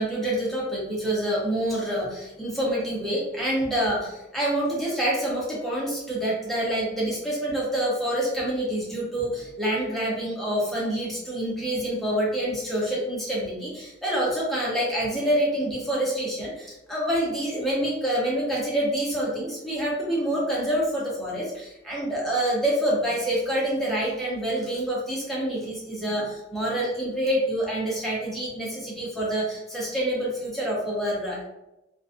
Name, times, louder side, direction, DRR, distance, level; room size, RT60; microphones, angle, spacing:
voice 1, 0.0-31.4, right 1 dB, ahead, -6 dB, 0.6 m, -27 dB
2.4 x 2.3 x 2.4 m, 0.94 s
head